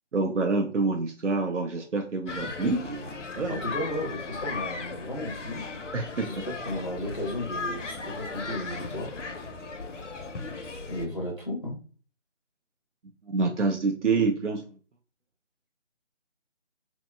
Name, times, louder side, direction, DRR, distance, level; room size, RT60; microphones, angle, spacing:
voice 1, 0.1-3.6 5.9-6.5 13.2-14.8, right 3 dB, 80° right, 3 dB, 0.5 m, -27 dB
sound 1, 2.3-11.1, left 4 dB, 85° left, 0.5 m, -37 dB
voice 2, 3.5-5.6 6.2-9.3 10.9-11.8, left 1 dB, 35° left, -1 dB, 0.5 m, -34 dB
2.8 x 2.1 x 2.2 m, 0.39 s
figure-of-eight pair, 160°, 36 cm